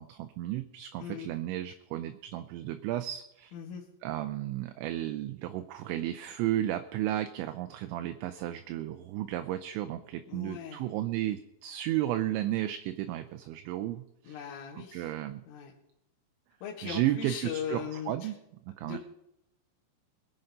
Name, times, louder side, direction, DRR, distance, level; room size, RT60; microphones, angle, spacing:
voice 1, 0.0-3.5 4.0-15.4 16.8-18.4 18.7-19.0, right 13 dB, 80° right, 9 dB, 2.8 m, -33 dB
voice 2, 1.0-1.3 3.5-3.8 10.3-10.8 14.3-15.1 15.5-15.7 16.6-18.3 18.8-19.0, left 8 dB, 80° left, -5 dB, 4.2 m, -39 dB
22.0 x 7.8 x 5.4 m, 0.83 s
omnidirectional pair, 5.7 m